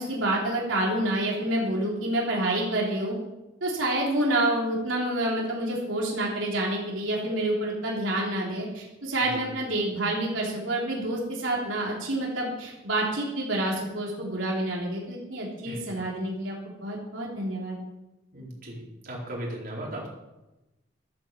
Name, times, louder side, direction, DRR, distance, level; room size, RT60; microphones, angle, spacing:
voice 1, 0.0-3.2 3.6-17.8, right 1 dB, 90° right, -3 dB, 3.5 m, -28 dB
voice 2, 18.3-20.1, right 1 dB, 50° right, -4 dB, 4.3 m, -36 dB
13.0 x 8.8 x 7.5 m, 1.0 s
head